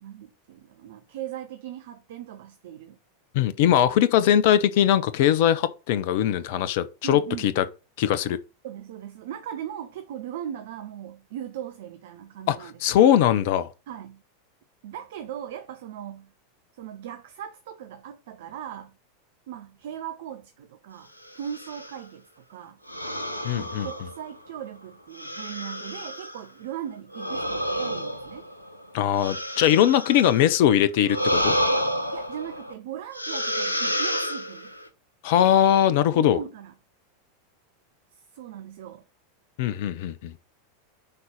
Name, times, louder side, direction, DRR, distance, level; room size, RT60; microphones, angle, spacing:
voice 1, 0.0-3.0 7.0-7.6 8.6-12.8 13.9-14.2 14.8-16.3 16.7-19.0 19.5-22.8 23.5-28.4 32.1-34.8 36.1-36.7 38.1-39.0, right 10 dB, 55° right, 0.6 m, -38 dB
voice 2, 3.3-7.6 8.0-8.4 12.5-13.7 23.4-23.9 28.9-31.6 35.2-36.4 39.6-40.3, left 11 dB, 50° left, 0.6 m, -21 dB
sound 1, 21.3-22.0 22.9-24.5 25.1-26.4 27.1-30.5 31.1-32.7 33.1-34.9, equal, 85° left, 0.8 m, -29 dB
5.4 x 3.9 x 5.6 m
figure-of-eight pair, 85°, 0 cm